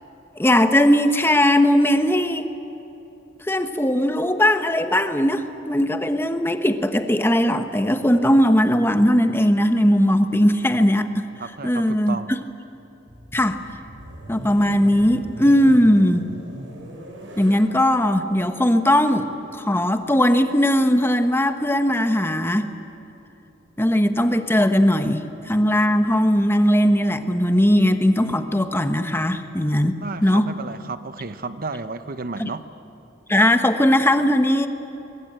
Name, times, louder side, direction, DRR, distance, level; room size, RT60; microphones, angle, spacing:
voice 1, 0.4-2.5 3.4-11.3 11.6-12.4 13.3-13.6 14.3-16.3 17.4-19.3 19.6-22.7 23.8-30.5 32.4-32.5 33.3-34.7, equal, 10° left, 8 dB, 1.2 m, -19 dB
voice 2, 11.4-12.3 30.0-32.6, right 3 dB, 50° right, 11 dB, 0.8 m, -32 dB
sound 1, 13.1-20.8, right 1 dB, 80° right, 6.2 m, -41 dB
29.0 x 22.5 x 9.0 m, 2.9 s
head